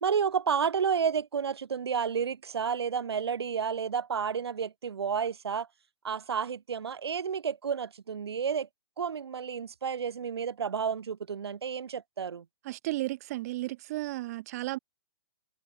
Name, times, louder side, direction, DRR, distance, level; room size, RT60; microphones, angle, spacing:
voice 1, 0.0-5.7 6.0-8.7 9.0-12.4, right 7 dB, 80° right, 0.5 m, -31 dB
voice 2, 12.6-14.8, right 18 dB, 40° right, 0.8 m, -34 dB
hypercardioid pair, 130°, 13 cm